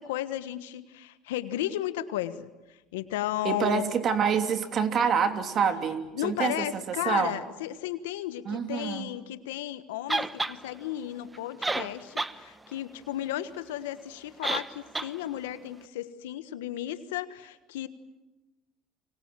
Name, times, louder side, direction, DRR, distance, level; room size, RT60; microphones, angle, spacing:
voice 1, 0.0-3.8 6.1-17.9, left 13 dB, 85° left, 12 dB, 1.4 m, -34 dB
voice 2, 3.4-6.7 7.0-7.3 8.5-9.1, right 6 dB, 45° right, 7 dB, 3.0 m, -26 dB
sound 1, 10.1-10.6 11.3-11.4 11.6-12.4 12.7-12.8 14.4-14.7 14.9-15.1, right 2 dB, 15° right, 1.2 m, -29 dB
29.5 x 24.5 x 7.6 m, 1.1 s
supercardioid pair, 85°, 0 cm